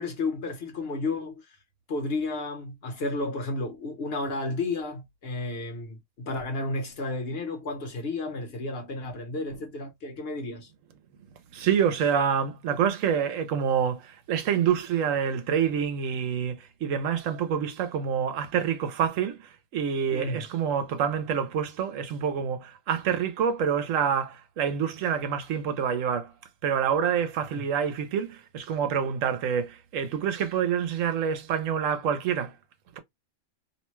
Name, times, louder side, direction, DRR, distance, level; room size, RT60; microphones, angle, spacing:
voice 1, 0.0-1.6 1.9-10.7 20.1-20.4 27.5-27.6, left 2 dB, 55° left, 1.1 m, -32 dB
voice 2, 11.5-19.4 19.7-26.3 26.6-32.5, right 8 dB, 75° right, 1.0 m, -27 dB
2.8 x 2.2 x 3.0 m
omnidirectional pair, 1.3 m